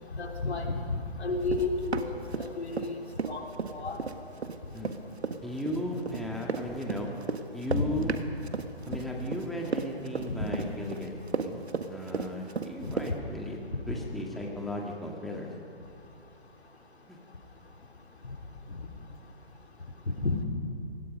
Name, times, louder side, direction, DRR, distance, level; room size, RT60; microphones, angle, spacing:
voice 1, 0.1-0.8 1.2-3.4 3.7-4.0 7.7-7.9 8.9-9.0 12.8-13.2 13.7-14.0 20.2-20.4, left 3 dB, 85° left, 2 dB, 3.8 m, -32 dB
Run, 1.5-2.9 3.2-13.1, right 5 dB, 85° right, 1.6 m, -34 dB
voice 2, 5.4-7.1 7.5-8.1 8.9-13.6 13.9-15.5 17.1-17.2, left 1 dB, ahead, -1 dB, 2.0 m, -36 dB
28.5 x 20.5 x 5.4 m, 2.5 s
figure-of-eight pair, 140°, 32 cm